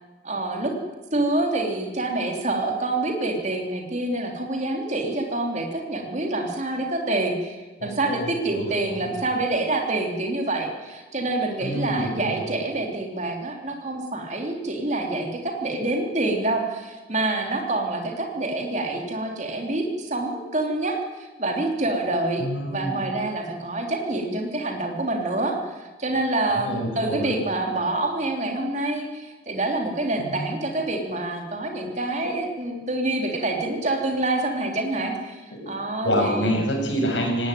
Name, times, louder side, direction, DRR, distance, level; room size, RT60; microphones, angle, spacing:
voice 1, 0.2-0.8 1.1-36.6, right 2 dB, 40° right, 2 dB, 3.3 m, -27 dB
voice 2, 7.8-8.3 8.6-8.7 11.6-12.1 22.4-22.9 26.6-27.4 30.2-30.4 35.5-35.7 36.0-37.5, equal, 70° left, 1 dB, 6.8 m, -26 dB
18.5 x 17.5 x 9.3 m, 1.2 s
head